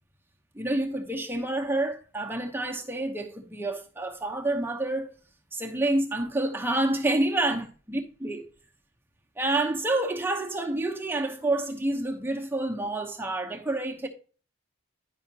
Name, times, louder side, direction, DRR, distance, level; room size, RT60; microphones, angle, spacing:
voice 1, 0.5-5.1 5.5-8.5 9.4-14.1, right 2 dB, 10° right, 0.8 m, -28 dB
9.8 x 5.7 x 2.8 m
head